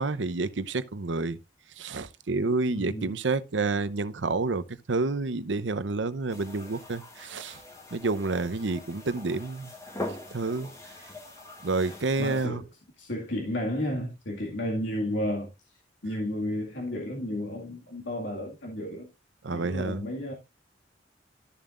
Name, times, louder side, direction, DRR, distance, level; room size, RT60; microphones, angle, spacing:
voice 1, 0.0-1.4 1.8-7.6 7.9-9.7 10.3-10.7 11.6-12.6 19.4-20.0, right 3 dB, 90° right, 0.8 m, -29 dB
voice 2, 2.7-3.2 12.2-12.6 13.0-15.5 16.0-19.1 19.5-20.3, left 1 dB, 90° left, 2.1 m, -32 dB
sound 1, 6.3-12.5, left 2 dB, 15° left, 2.0 m, -42 dB
13.0 x 7.0 x 2.5 m
head